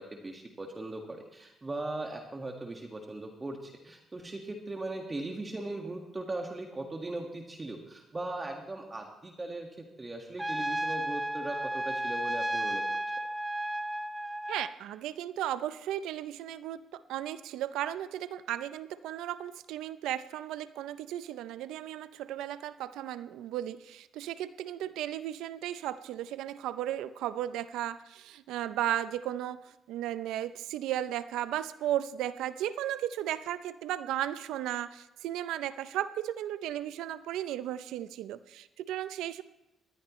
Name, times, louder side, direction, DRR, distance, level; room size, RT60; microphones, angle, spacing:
voice 1, 0.0-12.9, right 2 dB, 25° right, 2 dB, 1.7 m, -39 dB
Trumpet, 10.4-14.7, right 1 dB, 5° right, 0.6 m, -33 dB
voice 2, 14.5-29.6 29.9-39.4, right 12 dB, 90° right, 14 dB, 0.5 m, -35 dB
19.5 x 13.5 x 3.1 m, 0.92 s
cardioid pair, 90°, 0 cm